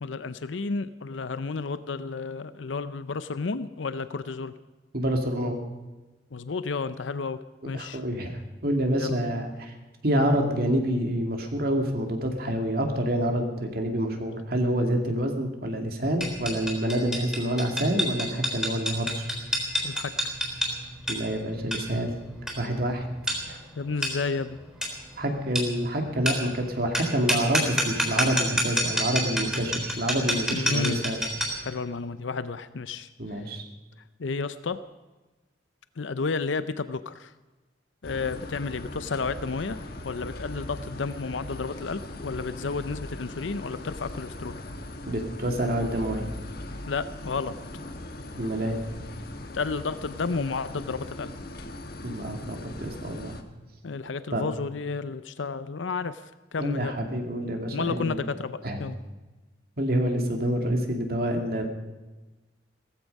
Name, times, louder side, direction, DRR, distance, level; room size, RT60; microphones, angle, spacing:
voice 1, 0.0-4.5 6.3-8.0 8.9-9.2 19.8-20.4 23.8-24.6 30.5-31.0 31.7-33.4 34.2-34.8 36.0-37.3 38.0-44.6 46.9-47.5 49.5-51.3 53.8-56.2 56.5-56.9 57.7-59.0, left 4 dB, 85° left, 13 dB, 0.6 m, -32 dB
voice 2, 4.9-5.6 7.7-9.7 10.0-19.3 21.1-22.1 22.6-23.0 23.5-23.6 25.2-31.2 33.2-33.7 45.1-46.3 48.4-48.8 52.0-53.3 54.3-54.4 56.6-58.2 58.6-58.8 59.8-61.6, right 1 dB, 55° right, 3 dB, 2.4 m, -27 dB
sound 1, 16.2-31.7, equal, 5° right, 3.8 m, -29 dB
sound 2, 38.0-53.4, left 1 dB, 55° left, 1.3 m, -39 dB
17.0 x 14.5 x 5.4 m, 1.2 s
head